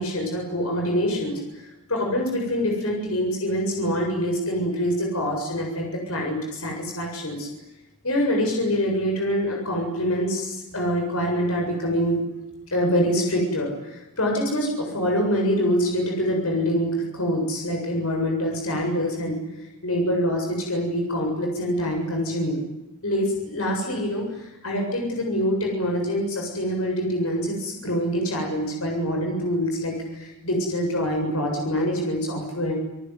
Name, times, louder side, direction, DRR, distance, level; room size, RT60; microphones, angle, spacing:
voice 1, 0.0-7.5 8.0-12.2 12.7-19.4 19.8-22.6 23.0-32.7, equal, 70° left, 1 dB, 7.6 m, -25 dB
29.5 x 19.5 x 9.7 m, 0.98 s
head